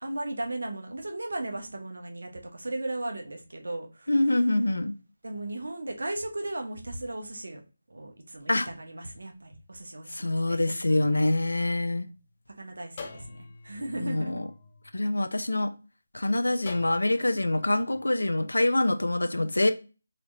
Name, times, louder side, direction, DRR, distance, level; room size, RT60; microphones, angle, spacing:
voice 1, 0.0-4.1 5.2-7.6 7.9-10.6 11.1-11.3 12.5-14.4, right 2 dB, 70° right, 0.9 m, -36 dB
voice 2, 4.1-4.9 8.5-8.7 10.1-12.1 14.0-14.5 14.9-15.7 16.1-19.7, left 1 dB, 85° left, 0.5 m, -25 dB
sound 1, 10.9-12.3 13.0-15.5 16.7-18.0, left 4 dB, 35° left, 0.7 m, -47 dB
4.2 x 2.9 x 2.6 m
figure-of-eight pair, 160°, 0 cm